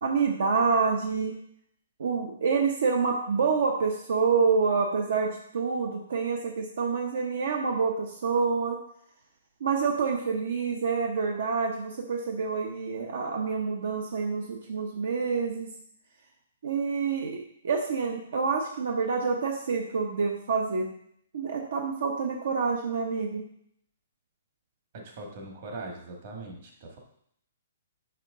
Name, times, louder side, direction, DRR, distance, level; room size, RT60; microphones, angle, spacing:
voice 1, 0.0-1.3 2.0-8.8 9.6-15.7 16.6-20.9 21.3-23.4, right 5 dB, 70° right, 2 dB, 0.9 m, -27 dB
voice 2, 24.9-27.0, right 2 dB, 40° right, 1 dB, 1.4 m, -41 dB
5.9 x 5.7 x 3.7 m, 0.69 s
hypercardioid pair, 165°, 0 cm